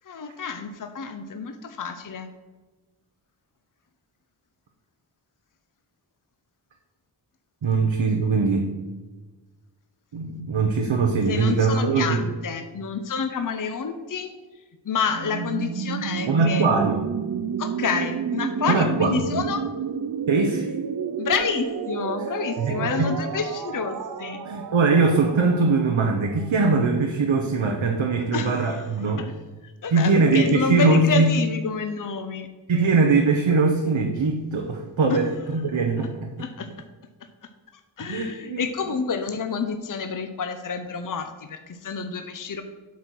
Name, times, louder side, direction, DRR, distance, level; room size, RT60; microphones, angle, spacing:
voice 1, 0.0-2.3 11.3-14.3 14.8-16.7 17.6-19.6 21.2-24.4 28.3-28.9 29.2-29.3 29.6-32.5 35.1-35.2 36.0-36.1 36.4-36.7 37.7-42.6, left 5 dB, 45° left, 7 dB, 0.7 m, -29 dB
voice 2, 7.6-8.7 10.1-12.2 16.3-17.0 18.7-19.4 20.3-20.7 22.6-23.1 24.4-29.2 29.9-31.3 32.7-36.1 38.1-38.6, right 4 dB, 75° right, 2 dB, 0.9 m, -21 dB
sound 1, 15.1-26.9, right 7 dB, 45° right, 0.5 m, -31 dB
8.4 x 4.3 x 6.3 m, 1.3 s
wide cardioid pair, 60°, 47 cm